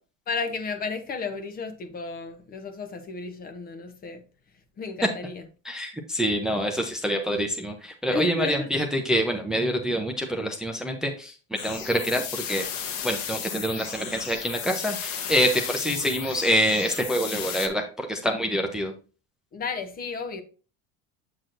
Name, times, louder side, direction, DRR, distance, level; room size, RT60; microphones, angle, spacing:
voice 1, 0.3-4.2 4.8-5.4 8.1-8.7 19.5-20.4, left 4 dB, 30° left, 0.9 m, -32 dB
voice 2, 5.6-11.3 11.6-12.7 13.0-18.9, equal, ahead, 0.7 m, -26 dB
sound 1, 11.6-17.7, left 8 dB, 70° left, 1.3 m, -34 dB
7.7 x 6.2 x 2.6 m
cardioid pair, 140°, 31 cm